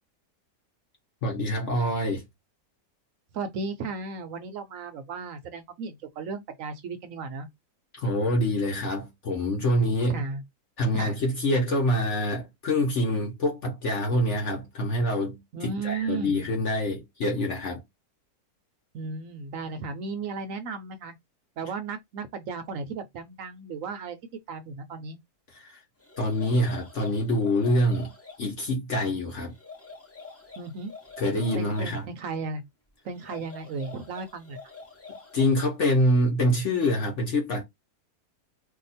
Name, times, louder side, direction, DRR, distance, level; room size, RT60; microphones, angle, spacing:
voice 1, 1.2-2.2 7.9-10.2 10.8-17.8 25.5-25.8 26.2-28.1 28.4-29.5 31.2-32.1 35.3-37.6, left 1 dB, 55° left, 1.0 m, -26 dB
voice 2, 3.3-7.5 10.1-10.4 10.9-11.1 15.5-16.4 18.9-21.1 21.6-24.2 24.5-25.2 30.6-30.9 31.6-32.6 33.0-34.6, right 4 dB, 65° right, 0.9 m, -35 dB
sound 1, 26.0-28.5 29.5-32.0 33.1-35.7, left 4 dB, 15° left, 0.5 m, -46 dB
2.8 x 2.3 x 4.0 m
omnidirectional pair, 1.8 m